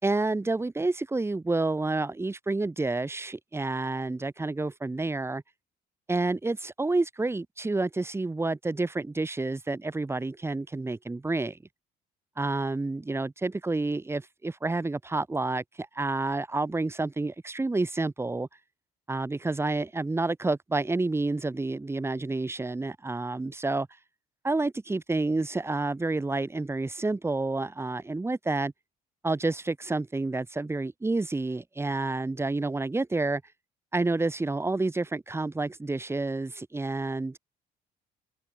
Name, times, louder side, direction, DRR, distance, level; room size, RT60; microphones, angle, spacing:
voice 1, 0.0-5.4 6.1-11.6 12.4-18.5 19.1-23.9 24.4-28.7 29.2-33.4 33.9-37.4, right 2 dB, 15° right, 4.5 m, -29 dB
cardioid pair, 110°, 17 cm